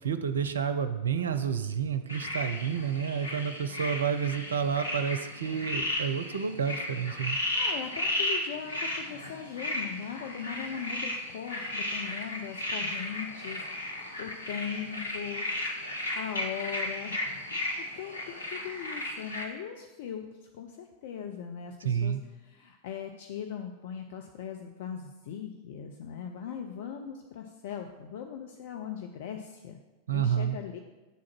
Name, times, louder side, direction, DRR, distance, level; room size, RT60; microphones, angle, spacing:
voice 1, 0.0-7.4 21.8-22.2 30.1-30.6, right 7 dB, 70° right, 10 dB, 0.4 m, -30 dB
sound 1, 2.1-19.4, left 1 dB, 75° left, 1.0 m, -34 dB
voice 2, 7.5-15.5 16.2-17.2 17.8-22.1 22.4-29.8 30.1-30.8, left 8 dB, 55° left, 4 dB, 0.5 m, -39 dB
8.2 x 3.7 x 5.9 m, 1.1 s
figure-of-eight pair, 90°, 0 cm